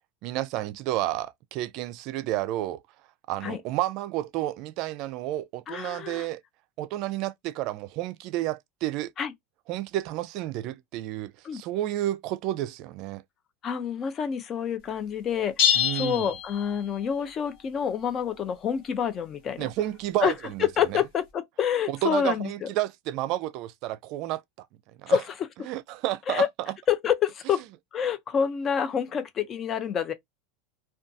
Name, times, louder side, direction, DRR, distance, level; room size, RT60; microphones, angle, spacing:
voice 1, 0.2-2.8 3.3-6.4 6.8-9.1 9.7-13.2 15.8-16.3 19.6-21.0 21.9-24.7 25.0-25.2 25.7-26.5, right 14 dB, 50° right, 0.3 m, -31 dB
voice 2, 5.7-6.3 9.2-9.3 11.4-11.6 13.6-19.7 20.2-20.3 20.6-22.7 25.1-25.7 26.3-26.5 26.9-27.6 27.9-30.1, left 8 dB, 30° left, 0.4 m, -27 dB
sound 1, 15.6-17.2, left 9 dB, 65° left, 1.4 m, -26 dB
2.5 x 2.3 x 2.5 m
supercardioid pair, 135°, 0 cm